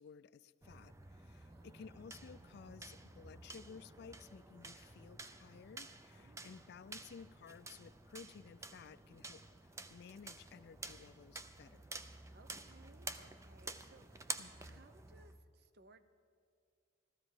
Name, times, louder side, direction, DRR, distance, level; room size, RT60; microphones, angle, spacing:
voice 1, 0.0-11.8 14.4-14.8, left 6 dB, 60° left, 17 dB, 0.3 m, -56 dB
sound 1, 0.6-15.4, right 3 dB, 15° right, 0.5 m, -51 dB
voice 2, 1.3-1.9 6.1-6.5 12.3-16.0, right 3 dB, 55° right, 11 dB, 0.7 m, -65 dB
14.5 x 14.0 x 4.9 m, 2.5 s
head